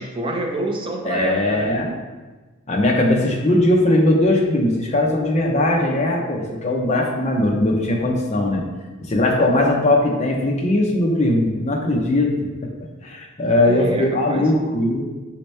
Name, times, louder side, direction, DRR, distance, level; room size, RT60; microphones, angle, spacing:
voice 1, 0.0-1.7 9.3-9.4 13.6-14.5, right 1 dB, 25° right, 1 dB, 0.4 m, -27 dB
voice 2, 1.0-1.9 2.7-8.6 9.0-12.3 13.0-15.1, left 1 dB, 30° left, 0 dB, 0.7 m, -19 dB
5.3 x 2.9 x 3.3 m, 1.3 s
head